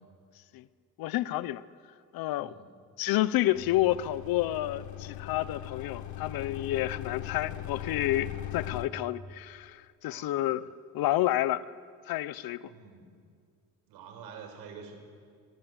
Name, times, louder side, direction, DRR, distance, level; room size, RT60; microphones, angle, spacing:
voice 1, 1.0-1.6 2.1-2.5 3.0-10.7 10.9-11.6 12.1-12.7, left 15 dB, 75° left, 17 dB, 1.0 m, -29 dB
sound 1, 3.5-8.9, left 11 dB, 50° left, 1.7 m, -40 dB
voice 2, 10.0-10.4 12.7-13.1 13.9-15.0, right 6 dB, 85° right, 5 dB, 6.0 m, -47 dB
27.0 x 24.5 x 8.2 m, 2.1 s
cardioid pair, 110°, 36 cm